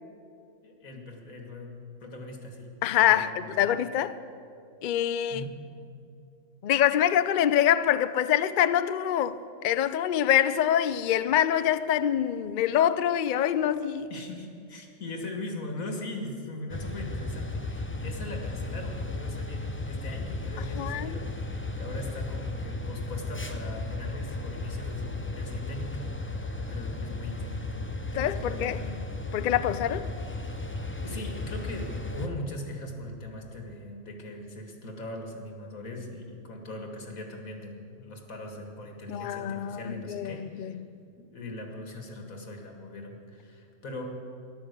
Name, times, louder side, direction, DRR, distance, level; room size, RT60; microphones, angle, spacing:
voice 1, 0.6-2.7 3.0-3.5 5.3-5.5 14.1-29.1 31.0-40.8 41.3-44.1, left 1 dB, 85° left, 2.3 m, -40 dB
voice 2, 2.8-4.2 4.8-5.4 6.6-9.4 9.6-14.1 20.7-21.1 28.2-28.8 29.3-30.1 39.1-41.0, left 10 dB, 65° left, 0.5 m, -25 dB
sound 1, 16.7-32.3, left 2 dB, 15° left, 0.6 m, -35 dB
13.0 x 11.5 x 8.1 m
omnidirectional pair, 1.4 m